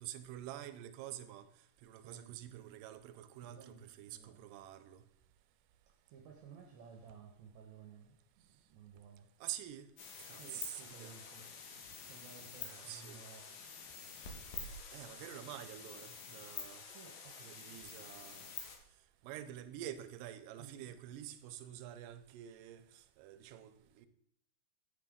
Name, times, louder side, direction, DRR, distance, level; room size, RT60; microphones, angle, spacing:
voice 1, 0.0-1.5 1.8-5.0 9.4-9.9 10.2-11.2 12.6-13.2 14.9-16.9 17.4-18.6 19.2-24.1, right 12 dB, 90° right, 2.2 m, -48 dB
voice 2, 2.0-2.8 3.4-4.4 6.1-9.3 10.3-11.6 12.0-13.6 14.1-14.3 16.6-17.5 20.5-20.9, right 6 dB, 70° right, 1.9 m, -57 dB
sound 1, 10.0-18.8, left 6 dB, 85° left, 2.6 m, -48 dB
9.1 x 4.9 x 3.6 m
omnidirectional pair, 3.7 m